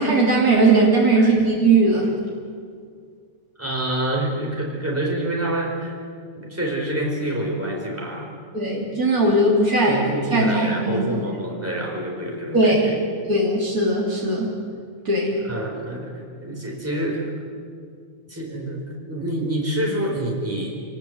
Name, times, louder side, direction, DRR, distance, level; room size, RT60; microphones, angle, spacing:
voice 1, 0.0-2.1 8.5-10.0 10.3-11.2 12.5-12.9 13.3-14.5 15.1-15.4, right 2 dB, 85° right, -4 dB, 3.8 m, -19 dB
voice 2, 3.6-6.0 6.3-8.3 9.2-9.4 9.9-13.0 15.5-17.3 18.3-20.8, right 1 dB, 10° right, -1 dB, 4.6 m, -27 dB
28.5 x 18.5 x 8.0 m, 2.1 s
omnidirectional pair, 1.5 m